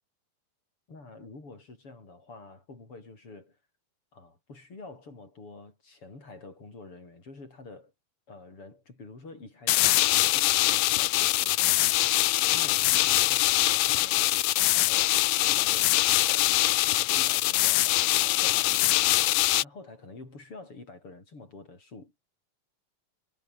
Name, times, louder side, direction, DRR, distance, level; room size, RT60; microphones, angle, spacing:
voice 1, 0.9-3.6 4.1-7.9 8.3-22.3, left 3 dB, 35° left, 7.7 m, -48 dB
sound 1, 9.7-19.6, left 18 dB, 80° left, 2.4 m, -23 dB
omnidirectional pair, 4.1 m